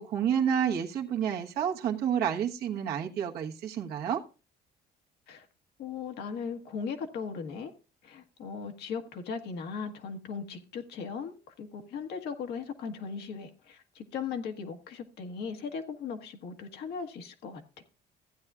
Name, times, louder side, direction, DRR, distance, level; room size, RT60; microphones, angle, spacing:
voice 1, 0.0-4.2, right 8 dB, 70° right, 1 dB, 1.3 m, -29 dB
voice 2, 5.8-7.7 8.0-17.8, left 6 dB, 75° left, 5 dB, 1.4 m, -38 dB
15.0 x 8.9 x 2.4 m, 0.32 s
cardioid pair, 110°, 17 cm